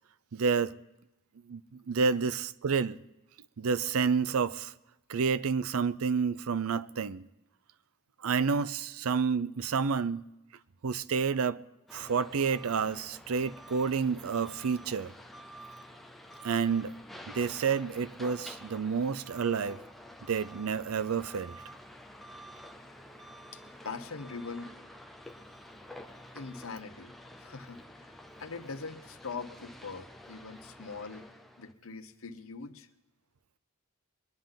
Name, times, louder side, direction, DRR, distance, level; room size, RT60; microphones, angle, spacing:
voice 1, 0.3-0.7 1.5-3.0 3.6-4.7 5.1-7.2 8.2-10.2 10.8-11.6 11.9-15.1 16.4-16.9 17.3-19.8 20.3-21.6, right 5 dB, 80° right, 0.5 m, -29 dB
sound 1, 11.9-31.7, equal, ahead, 0.7 m, -49 dB
voice 2, 23.5-24.7 26.3-28.1 28.4-31.3 31.6-32.9, left 4 dB, 70° left, 0.9 m, -42 dB
22.5 x 10.5 x 3.8 m
head